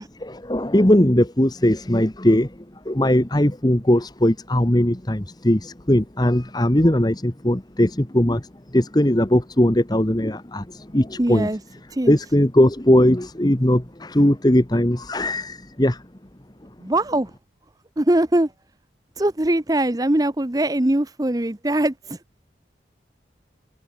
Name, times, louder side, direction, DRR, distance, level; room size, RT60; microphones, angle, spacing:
voice 1, 0.2-2.5 2.8-8.5 8.7-11.5 12.1-16.0, left 1 dB, 20° left, 1.3 m, -19 dB
voice 2, 11.2-11.6 11.9-12.2 16.8-17.3 18.0-18.5 19.2-22.2, right 1 dB, 20° right, 0.8 m, -21 dB
head